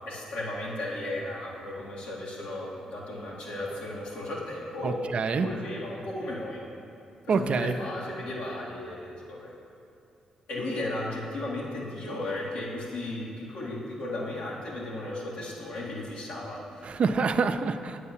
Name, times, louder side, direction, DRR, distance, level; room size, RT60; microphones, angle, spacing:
voice 1, 0.1-6.6 7.3-9.5 10.5-16.9, left 1 dB, 80° left, -5 dB, 2.0 m, -35 dB
voice 2, 4.8-5.5 7.3-7.7 16.8-18.0, right 5 dB, 55° right, 9 dB, 0.4 m, -26 dB
8.4 x 4.8 x 7.1 m, 2.6 s
supercardioid pair, 55°, 2 cm